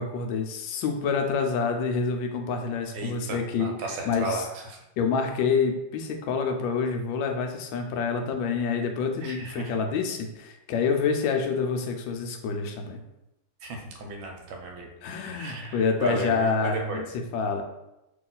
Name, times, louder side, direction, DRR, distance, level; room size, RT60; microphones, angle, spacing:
voice 1, 0.0-4.5 5.0-13.0 15.0-17.6, left 5 dB, 80° left, 4 dB, 1.3 m, -27 dB
voice 2, 2.9-4.8 9.2-9.8 13.6-14.9 15.3-17.1, right 2 dB, 90° right, 2 dB, 1.5 m, -35 dB
3.0 x 3.0 x 3.9 m, 0.91 s
omnidirectional pair, 2.1 m